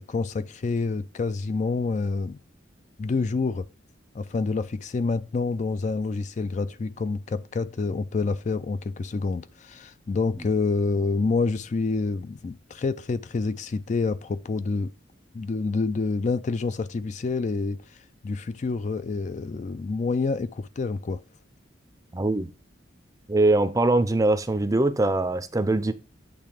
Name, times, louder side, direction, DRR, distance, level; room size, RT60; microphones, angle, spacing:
voice 1, 0.0-2.4 3.0-3.7 4.1-14.9 15.3-21.2, left 4 dB, 40° left, 0.3 m, -27 dB
voice 2, 22.1-22.5 23.3-25.9, right 2 dB, 15° right, 0.5 m, -22 dB
8.8 x 3.2 x 4.9 m
head